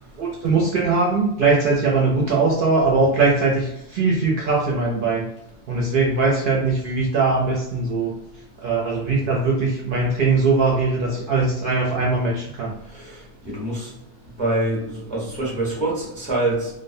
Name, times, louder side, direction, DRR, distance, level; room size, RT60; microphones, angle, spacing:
voice 1, 0.2-5.3 5.7-8.2 8.6-12.7, right 3 dB, 60° right, -3 dB, 0.6 m, -20 dB
voice 2, 13.4-13.9 14.4-14.8 15.1-16.7, right 2 dB, 10° left, -5 dB, 0.6 m, -24 dB
2.4 x 2.1 x 2.6 m, 0.84 s
omnidirectional pair, 1.2 m